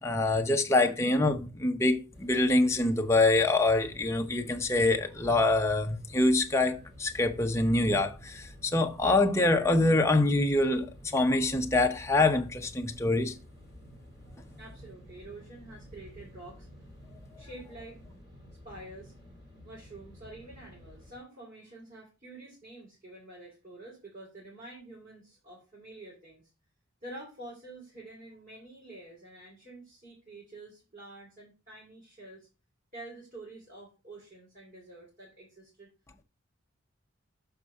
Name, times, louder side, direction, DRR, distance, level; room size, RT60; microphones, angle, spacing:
voice 1, 0.0-13.4, left 2 dB, 15° left, 0.7 m, -25 dB
sound 1, 2.1-21.2, equal, 20° right, 2.4 m, -52 dB
voice 2, 14.6-16.7 17.4-18.0 18.6-19.1 19.6-26.5 27.0-32.5 32.9-35.9, right 2 dB, 40° right, 3.7 m, -48 dB
6.8 x 5.4 x 4.8 m
head